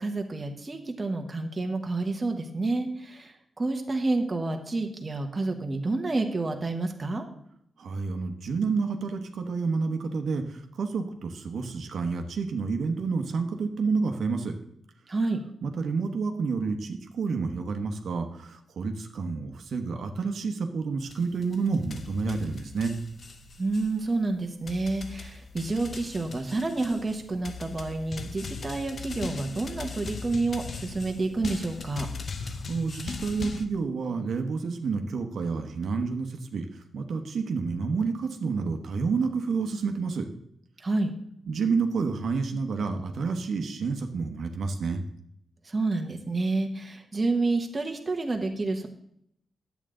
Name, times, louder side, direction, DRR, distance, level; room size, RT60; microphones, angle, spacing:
voice 1, 0.0-7.2 15.1-15.4 23.6-32.1 40.8-41.1 45.6-48.9, right 3 dB, 25° right, 3 dB, 1.1 m, -29 dB
voice 2, 7.8-14.5 15.6-23.0 32.4-40.3 41.5-45.0, right 4 dB, 65° right, 5 dB, 1.0 m, -29 dB
sound 1, 21.1-33.7, left 4 dB, 40° left, 0.7 m, -39 dB
11.0 x 8.1 x 3.8 m, 0.72 s
wide cardioid pair, 160°, 0 cm